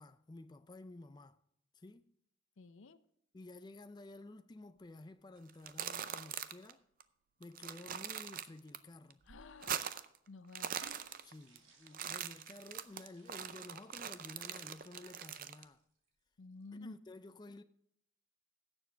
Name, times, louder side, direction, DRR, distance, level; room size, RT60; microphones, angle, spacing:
voice 1, 0.0-1.4 1.7-2.1 3.3-6.8 7.4-9.2 11.2-15.8 16.7-17.6, left 2 dB, 20° left, 0.4 m, -53 dB
voice 2, 2.6-3.0 9.3-9.9 10.3-10.7 16.4-17.0, left 3 dB, 75° left, 0.6 m, -52 dB
sound 1, 5.5-6.7 7.0-7.1 7.4-8.8 9.1-10.2 10.4-11.6 11.9-15.6, right 9 dB, 45° right, 0.5 m, -42 dB
sound 2, 10.7-16.1 16.5-16.7, right 3 dB, 90° right, 2.4 m, -63 dB
16.5 x 7.2 x 3.4 m
head